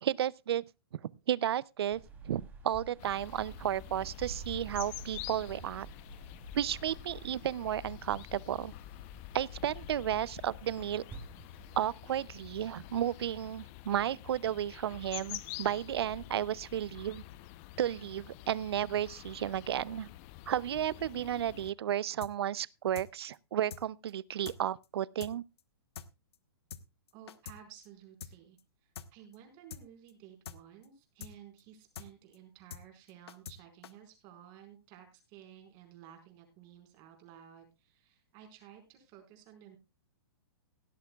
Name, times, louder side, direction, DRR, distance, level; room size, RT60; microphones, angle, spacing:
voice 1, 0.0-0.6 1.3-5.9 6.5-8.7 9.3-11.0 11.8-17.2 17.8-20.1 20.5-25.4, right 10 dB, 75° right, 0.5 m, -33 dB
sound 1, 1.9-11.8, right 4 dB, 10° right, 3.0 m, -50 dB
sound 2, 3.0-21.7, left 15 dB, 35° left, 0.7 m, -48 dB
sound 3, 22.2-22.3 22.6-22.7 22.9-23.1 23.3-23.4 23.7-23.8 24.1-24.2 24.4-24.6 24.8-24.9 25.2-25.3 25.6-25.7 25.9-26.1 26.3-26.4 26.7-26.8 27.1-27.6 27.8-27.9 28.2-28.3 28.6-28.7 28.9-29.1 29.3-29.4 29.7-29.8 30.1-30.2 30.4-30.6 30.8-30.9 31.2-31.3 31.6-31.7 31.9-32.1 32.3-32.4 32.7-32.8 33.1-33.6 33.8-33.9, left 8 dB, 75° left, 1.2 m, -45 dB
voice 2, 27.1-39.8, right 10 dB, 35° right, 4.8 m, -55 dB
17.5 x 11.5 x 2.3 m
hypercardioid pair, 145°, 13 cm